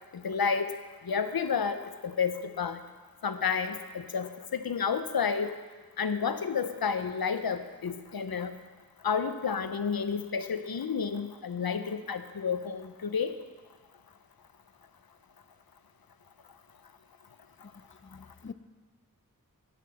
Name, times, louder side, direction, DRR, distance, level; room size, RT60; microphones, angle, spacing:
voice 1, 0.1-0.7 1.0-2.8 3.2-5.6 6.0-8.5 9.0-13.4, left 6 dB, 85° left, 10 dB, 0.7 m, -30 dB
voice 2, 17.6-18.5, left 5 dB, 35° left, 12 dB, 0.5 m, -47 dB
10.0 x 6.9 x 6.3 m, 1.4 s
wide cardioid pair, 55°, 35 cm